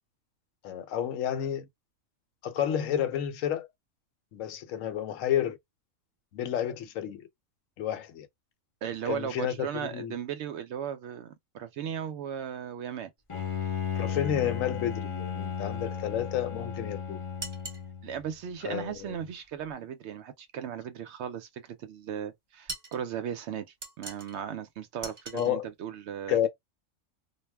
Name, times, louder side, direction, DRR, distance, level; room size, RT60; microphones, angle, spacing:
voice 1, 0.6-1.7 2.4-3.7 4.3-5.6 6.3-7.3 7.8-8.3 9.1-10.1 13.9-17.2 18.6-19.1 25.3-25.7 26.3-26.5, left 10 dB, 75° left, 1.0 m, -30 dB
voice 2, 8.8-13.1 18.0-23.7 24.0-26.5, right 8 dB, 65° right, 0.8 m, -36 dB
Bowed string instrument, 13.3-18.2, left 7 dB, 35° left, 0.5 m, -34 dB
sound 1, 17.4-17.9 22.7-23.0 23.8-24.4 25.0-25.5, right 2 dB, 25° right, 0.6 m, -40 dB
2.4 x 2.1 x 3.2 m
omnidirectional pair, 1.4 m